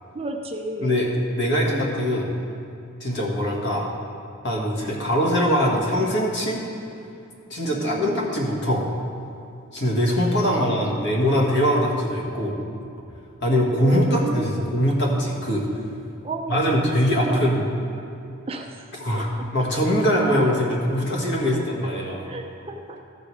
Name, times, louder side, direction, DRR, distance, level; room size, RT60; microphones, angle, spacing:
voice 1, 0.1-1.1 7.7-8.3 10.4-11.1 13.8-14.5 16.2-16.6 17.2-17.6 18.5-18.8 19.2-19.5 22.2-23.0, right 2 dB, 25° right, 3 dB, 0.5 m, -32 dB
voice 2, 0.8-2.3 3.0-3.9 4.4-6.6 7.5-8.9 9.7-12.6 13.4-15.7 16.5-17.6 19.0-22.2, equal, 50° left, -3 dB, 1.6 m, -22 dB
14.5 x 5.2 x 4.8 m, 2.6 s
head